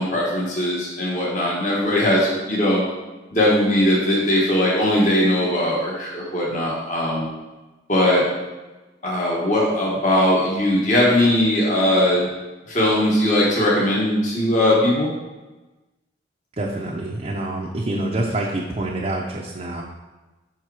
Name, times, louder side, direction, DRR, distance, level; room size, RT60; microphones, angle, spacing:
voice 1, 0.0-2.8 3.3-7.3 7.9-8.2 9.0-12.3 12.7-15.1, left 1 dB, 40° left, -4 dB, 1.2 m, -19 dB
voice 2, 16.6-19.8, right 1 dB, 35° right, -3 dB, 0.6 m, -26 dB
5.8 x 4.5 x 4.7 m, 1.2 s
head